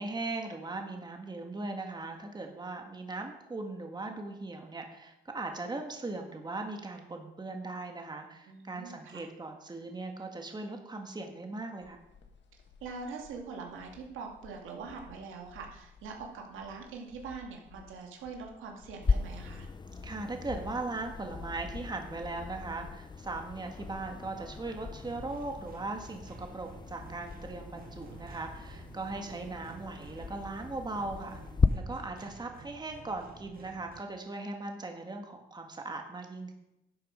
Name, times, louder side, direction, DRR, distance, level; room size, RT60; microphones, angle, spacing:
voice 1, 0.0-12.0 20.0-31.4 31.7-36.5, right 2 dB, 20° right, 3 dB, 1.7 m, -39 dB
voice 2, 8.5-9.3 12.8-19.7, right 4 dB, 85° right, 1 dB, 2.3 m, -43 dB
sound 1, 11.8-29.4, left 5 dB, 65° left, 1.5 m, -54 dB
sound 2, 19.0-31.7, left 4 dB, 20° left, 0.5 m, -36 dB
sound 3, 24.9-34.0, right 5 dB, 50° right, 1.6 m, -51 dB
12.0 x 7.6 x 5.1 m, 0.88 s
cardioid pair, 90°, 20 cm